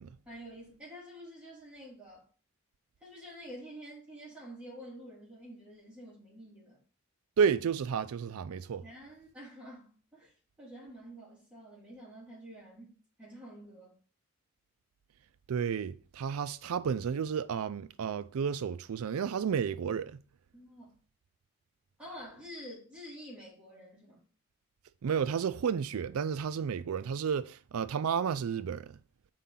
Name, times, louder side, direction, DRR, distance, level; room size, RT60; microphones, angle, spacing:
voice 1, 0.3-2.3 3.0-6.8 8.8-10.3 10.6-14.0 20.5-20.9 22.0-24.2, equal, 5° right, 2.5 m, -48 dB
voice 2, 7.4-8.8 15.5-20.2 25.0-29.0, right 7 dB, 75° right, 0.4 m, -31 dB
5.7 x 4.7 x 3.8 m
head